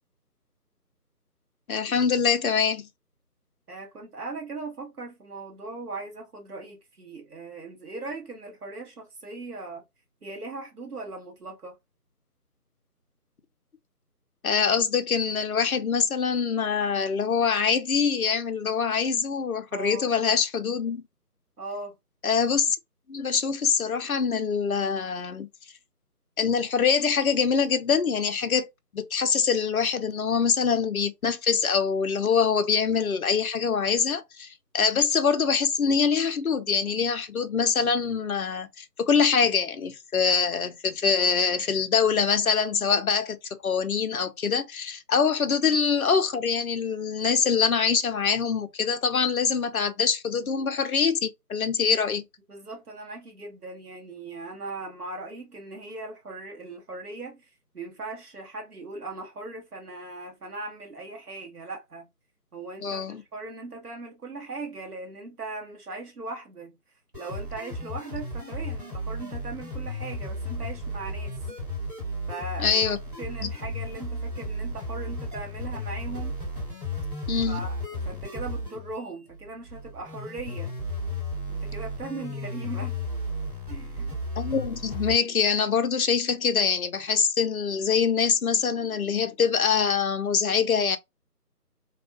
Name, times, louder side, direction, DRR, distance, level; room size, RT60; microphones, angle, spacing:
voice 1, 1.7-2.9 14.4-21.0 22.2-22.8 23.1-25.5 26.4-28.7 28.9-43.4 43.6-52.2 62.8-63.2 72.6-73.0 73.4-73.5 77.3-77.6 84.4-91.0, left 6 dB, 60° left, 0.6 m, -24 dB
voice 2, 3.7-9.8 10.2-11.8 19.7-20.1 21.6-22.0 52.5-62.1 62.5-66.8 67.2-71.4 72.3-76.4 77.4-80.8 81.5-82.9 83.7-84.2, right 3 dB, 65° right, 1.2 m, -39 dB
sound 1, 67.1-85.1, left 1 dB, 25° right, 1.8 m, -34 dB
2.7 x 2.4 x 2.3 m
figure-of-eight pair, 165°, 48 cm